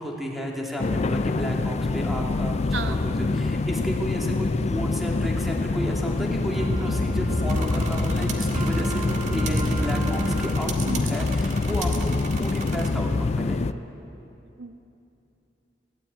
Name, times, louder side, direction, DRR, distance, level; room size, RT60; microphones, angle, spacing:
voice 1, 0.0-10.8 11.0-12.1 12.4-13.1 13.4-13.6, equal, ahead, -1 dB, 2.6 m, -32 dB
sound 1, 0.8-13.7, left 3 dB, 35° left, 0.4 m, -26 dB
voice 2, 2.7-3.0 10.9-11.1 14.6-14.8, right 3 dB, 70° right, 9 dB, 0.8 m, -32 dB
sound 2, 5.6-11.9, right 2 dB, 20° right, 0.6 m, -31 dB
sound 3, 7.5-12.9, right 5 dB, 40° right, 1.8 m, -38 dB
19.0 x 16.0 x 8.8 m, 2.7 s
head